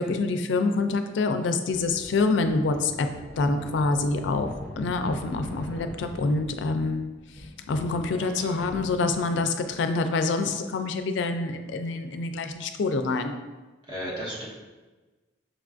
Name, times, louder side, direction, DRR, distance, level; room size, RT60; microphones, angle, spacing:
voice 1, 0.0-3.1 3.4-4.5 4.8-7.1 7.7-13.3, left 3 dB, 80° left, 7 dB, 0.4 m, -26 dB
sound 1, 1.7-9.4, left 1 dB, 65° right, 0.7 m, -43 dB
voice 2, 8.2-8.6 13.9-14.5, equal, 25° right, -6 dB, 1.0 m, -35 dB
6.2 x 2.4 x 2.4 m, 1.2 s
head